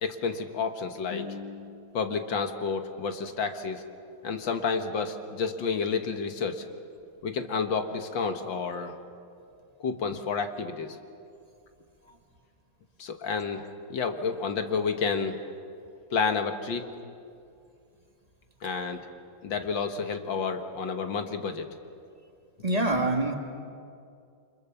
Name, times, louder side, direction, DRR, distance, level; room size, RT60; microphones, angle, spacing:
voice 1, 0.0-3.8 4.2-6.6 7.2-8.9 9.8-11.0 13.0-15.4 16.1-16.9 18.6-19.1 19.4-21.7, left 5 dB, 65° left, 6 dB, 2.0 m, -30 dB
voice 2, 22.6-23.3, right 2 dB, 20° right, 3 dB, 1.9 m, -25 dB
29.5 x 25.0 x 7.1 m, 2.4 s
omnidirectional pair, 2.3 m